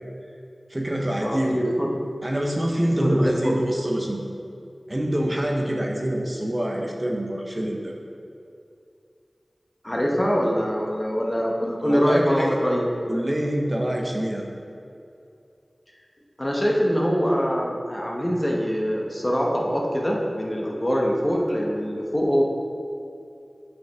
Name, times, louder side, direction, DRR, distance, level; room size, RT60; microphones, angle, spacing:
voice 1, 0.7-1.6 2.2-4.2 4.9-7.9 11.8-12.6 13.1-14.5, right 1 dB, 30° right, 0 dB, 0.7 m, -25 dB
voice 2, 1.2-1.9 3.0-3.6 9.8-12.8 16.4-22.4, equal, 20° left, -2 dB, 1.0 m, -23 dB
7.4 x 5.2 x 3.5 m, 2.5 s
wide cardioid pair, 65°, 0 cm